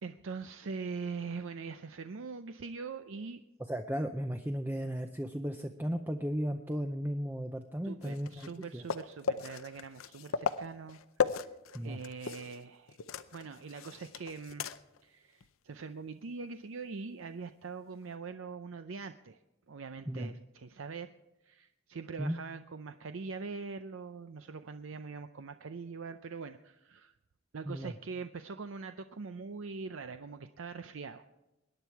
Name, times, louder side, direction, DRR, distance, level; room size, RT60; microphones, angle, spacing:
voice 1, 0.0-3.4 7.8-11.5 11.8-13.0 13.3-14.7 15.0-19.4 19.7-21.1 21.4-27.1 27.5-31.3, right 4 dB, 70° right, 9 dB, 0.5 m, -43 dB
voice 2, 3.7-8.5 8.7-8.8 11.7-12.0 20.1-20.3 22.2-22.4 27.6-27.9, equal, 10° right, 6 dB, 0.5 m, -35 dB
sound 1, 8.0-12.6 12.9-15.0 15.4-15.5 18.0-18.1, left 6 dB, 80° left, 0.6 m, -37 dB
21.5 x 10.0 x 4.6 m, 0.99 s
head